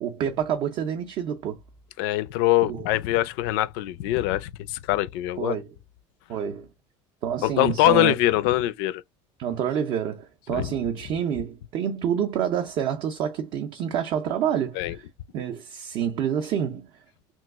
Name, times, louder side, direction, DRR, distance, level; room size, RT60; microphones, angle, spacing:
voice 1, 0.0-1.6 2.6-2.9 5.4-5.8 6.3-6.7 7.2-8.1 9.4-15.1 15.3-17.0, right 9 dB, 40° right, 0.4 m, -28 dB
voice 2, 2.0-5.6 7.4-9.0 10.5-10.7 14.8-15.0, left 15 dB, 70° left, 0.4 m, -23 dB
3.0 x 2.3 x 3.4 m
cardioid pair, 175°, 12 cm